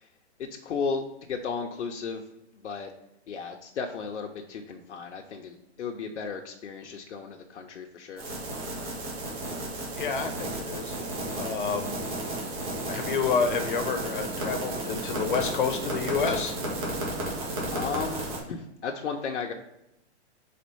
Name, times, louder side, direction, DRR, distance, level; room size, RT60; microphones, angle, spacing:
voice 1, 0.4-2.2 2.6-2.9 3.3-8.2 11.3-11.5 17.7-18.2 18.5-19.5, left 5 dB, 85° left, 2 dB, 0.9 m, -34 dB
sound 1, 8.2-18.4, right 1 dB, 30° right, 1.6 m, -33 dB
voice 2, 10.0-10.9 11.3-11.9 12.9-16.6, left 5 dB, 45° left, 6 dB, 1.0 m, -29 dB
4.3 x 4.2 x 5.4 m, 0.83 s
hypercardioid pair, 170°, 35 cm